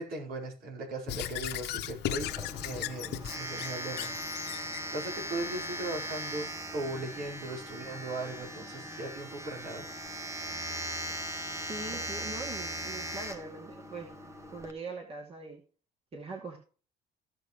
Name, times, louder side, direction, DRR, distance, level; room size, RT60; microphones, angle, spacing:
voice 1, 0.0-4.7 4.9-9.8, right 2 dB, 65° right, -1 dB, 4.5 m, -38 dB
Squeak / Writing, 1.1-4.8, left 12 dB, 80° left, 1.0 m, -37 dB
Domestic sounds home sounds, 2.2-14.7, equal, 15° right, 1.5 m, -39 dB
voice 2, 11.6-14.1 14.5-15.6 16.1-16.6, right 3 dB, 35° right, 0 dB, 2.5 m, -42 dB
16.0 x 6.4 x 3.1 m, 0.38 s
cardioid pair, 110°, 17 cm